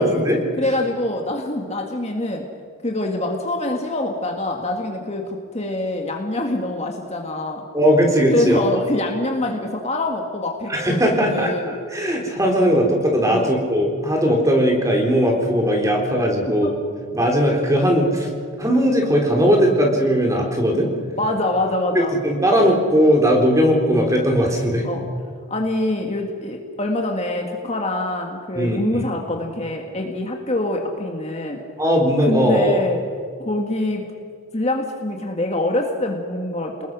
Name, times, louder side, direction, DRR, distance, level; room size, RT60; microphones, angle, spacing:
voice 1, 0.0-0.4 7.7-8.6 10.7-11.5 11.9-16.7 17.1-18.3 18.6-20.9 21.9-24.9 28.5-29.1 31.8-32.8, equal, 15° right, 1 dB, 3.8 m, -18 dB
voice 2, 0.6-2.5 2.8-7.6 8.3-11.7 13.3-13.5 16.6-16.7 18.0-18.1 21.2-22.1 24.8-25.0 25.5-31.6 32.2-33.0 33.4-34.0 34.5-36.9, left 1 dB, 30° left, 2 dB, 1.9 m, -25 dB
29.0 x 20.5 x 6.2 m, 2.2 s
head